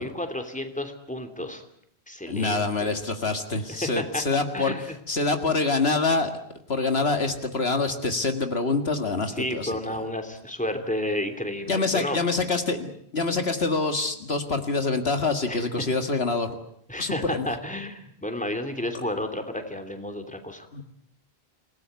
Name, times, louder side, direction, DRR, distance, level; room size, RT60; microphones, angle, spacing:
voice 1, 0.0-1.6 2.1-2.6 3.7-4.2 4.5-4.8 9.4-12.2 15.5-15.6 16.9-20.8, left 1 dB, 5° left, 6 dB, 3.0 m, -31 dB
voice 2, 2.3-4.7 5.1-6.3 6.7-9.8 11.7-16.5 17.0-17.5 20.7-20.8, left 3 dB, 70° left, 7 dB, 2.2 m, -26 dB
28.0 x 18.0 x 9.5 m, 0.71 s
omnidirectional pair, 1.1 m